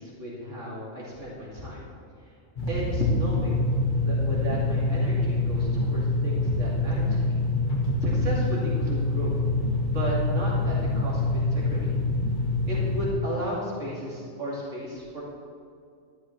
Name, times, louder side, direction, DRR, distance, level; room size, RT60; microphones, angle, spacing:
voice 1, 0.0-1.8 2.7-3.7 4.0-7.4 8.0-9.3 9.9-11.9 12.7-15.2, equal, 75° right, -7 dB, 2.8 m, -33 dB
sound 1, 2.6-13.1, left 2 dB, 40° left, 1.7 m, -25 dB
13.0 x 11.5 x 3.2 m, 2.3 s
omnidirectional pair, 1.3 m